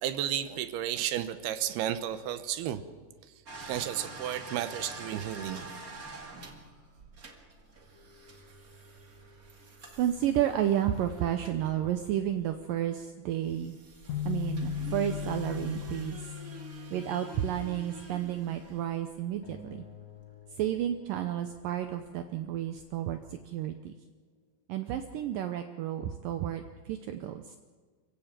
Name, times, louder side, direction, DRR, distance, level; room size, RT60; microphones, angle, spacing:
voice 1, 0.0-2.8 3.6-5.8, right 11 dB, 90° right, 3.0 m, -33 dB
Coffee Vending Machine, 3.5-12.8 13.4-19.4 20.9-21.0 21.3-21.4 22.5-22.6 22.8-23.0, right 3 dB, 30° right, 1.8 m, -47 dB
voice 2, 10.0-13.8 14.3-16.2 16.9-19.8 20.6-23.9 24.7-27.6, right 11 dB, 75° right, 2.3 m, -31 dB
sound 1, 14.1-18.1, left 11 dB, 55° left, 3.2 m, -37 dB
sound 2, 19.4-22.1, left 4 dB, 75° left, 4.3 m, -51 dB
26.5 x 16.0 x 7.5 m
omnidirectional pair, 4.4 m